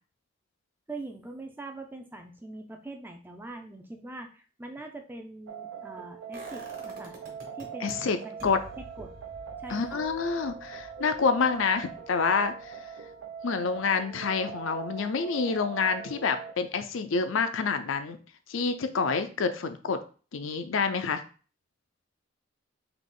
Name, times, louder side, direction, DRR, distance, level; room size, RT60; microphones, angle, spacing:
voice 1, 0.9-7.2 7.5-8.0 8.2-8.5 9.0-9.1 9.6-10.0, right 2 dB, 10° right, 4 dB, 0.4 m, -43 dB
sound 1, 5.5-16.5, right 7 dB, 75° right, 0.5 m, -41 dB
sound 2, 6.3-7.9 8.4-14.2 14.6-14.7, right 1 dB, 45° right, 1.2 m, -50 dB
voice 2, 7.8-8.2 8.4-8.6 9.7-12.8 13.4-18.2 18.5-20.0 20.3-21.2, left 5 dB, 70° left, 9 dB, 0.5 m, -28 dB
4.0 x 2.9 x 3.7 m, 0.38 s
head